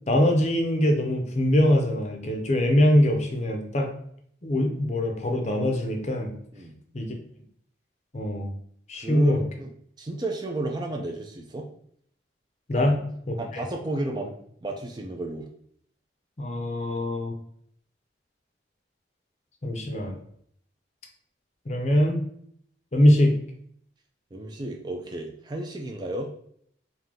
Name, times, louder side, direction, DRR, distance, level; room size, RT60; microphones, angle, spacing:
voice 1, 0.1-3.9 4.4-6.3 6.9-7.1 8.1-8.5 8.9-9.4 12.7-12.9 13.3-13.6 16.4-17.3 19.6-20.2 21.7-22.2 22.9-23.3, left 1 dB, 40° left, 3 dB, 0.6 m, -22 dB
voice 2, 9.0-9.7 10.0-11.7 12.7-13.0 13.4-14.3 14.6-15.5 24.3-26.3, right 2 dB, 25° right, 2 dB, 0.4 m, -32 dB
3.5 x 2.7 x 3.6 m, 0.65 s
head